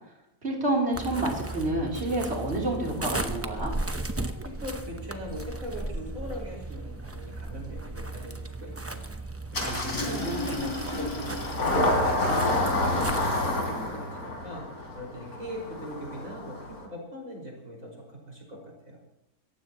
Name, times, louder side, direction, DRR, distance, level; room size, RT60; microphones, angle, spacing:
voice 1, 0.4-3.7 9.6-10.7, right 1 dB, 45° right, -2 dB, 3.6 m, -29 dB
sound 1, 0.9-13.4, right 2 dB, 15° right, 0.6 m, -36 dB
voice 2, 4.4-9.0 9.5-11.8 12.2-14.6 15.0-19.0, equal, 60° right, -1 dB, 5.7 m, -40 dB
Engine starting, 9.5-16.9, left 2 dB, 85° left, 3.9 m, -29 dB
26.5 x 15.0 x 3.0 m, 0.87 s
omnidirectional pair, 1.5 m